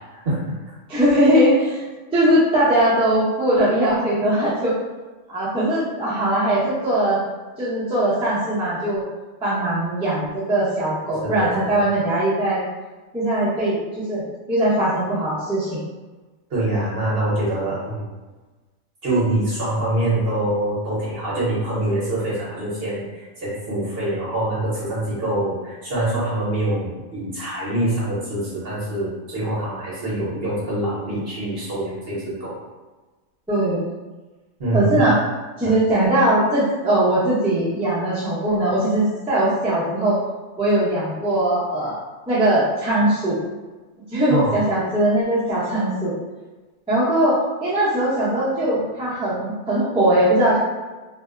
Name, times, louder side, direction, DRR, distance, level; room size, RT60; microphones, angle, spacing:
voice 1, 0.2-0.6 11.2-11.8 16.5-18.1 19.0-32.5 34.6-35.1 35.6-35.7 44.3-44.5, right 1 dB, 50° right, -8 dB, 1.0 m, -24 dB
voice 2, 0.9-1.8 2.1-4.7 5.3-7.2 7.6-9.0 9.4-12.6 13.1-15.8 33.5-33.8 34.7-35.2 35.6-40.2 40.6-42.0 42.3-43.4 44.1-46.1 46.9-47.4 47.6-50.6, right 1 dB, 5° right, -10 dB, 0.5 m, -20 dB
2.7 x 2.0 x 2.3 m, 1.2 s
omnidirectional pair, 1.4 m